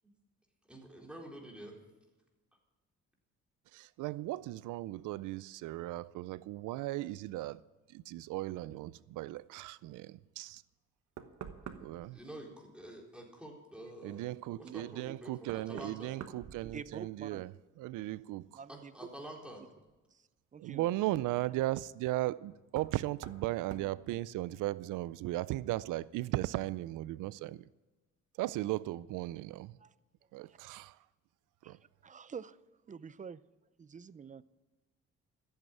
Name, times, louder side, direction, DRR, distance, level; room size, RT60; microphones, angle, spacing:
voice 1, 0.7-1.7 12.1-14.3 14.6-16.1 18.7-19.6, right 1 dB, 5° right, 4.1 m, -48 dB
voice 2, 3.7-7.6 7.9-10.6 11.8-12.2 14.0-17.5 17.8-18.5 20.6-27.6 28.4-29.7 30.3-30.9 31.7-31.8, right 17 dB, 90° right, 0.5 m, -37 dB
Knock, 10.7-10.8 11.2-12.1 14.6-14.7 15.4-17.3 17.6-18.2 19.9-20.0 22.7-23.0 23.2-23.5 23.7-23.9, right 8 dB, 65° right, 1.3 m, -47 dB
voice 3, 16.7-17.4 18.5-19.1 20.1-20.2 20.5-20.9 29.8-29.9 30.5-30.6 31.6-31.8 32.0-32.6 32.9-33.4 33.8-34.4, right 6 dB, 25° right, 0.5 m, -47 dB
14.0 x 8.1 x 9.0 m
cardioid pair, 90°, 30 cm